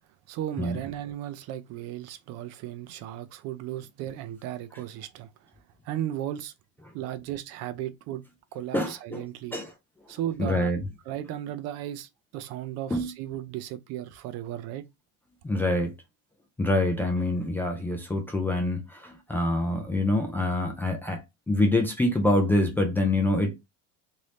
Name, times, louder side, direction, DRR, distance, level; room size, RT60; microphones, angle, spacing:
voice 1, 0.3-5.3 5.8-6.5 6.9-8.2 8.5-9.6 10.1-10.7 11.1-14.8, right 12 dB, 50° right, 0.5 m, -35 dB
voice 2, 8.7-9.2 9.5-9.7 10.4-10.8 12.9-13.1 15.4-15.9 16.6-23.7, left 1 dB, 5° left, 0.3 m, -26 dB
3.0 x 2.7 x 3.2 m
cardioid pair, 155°, 32 cm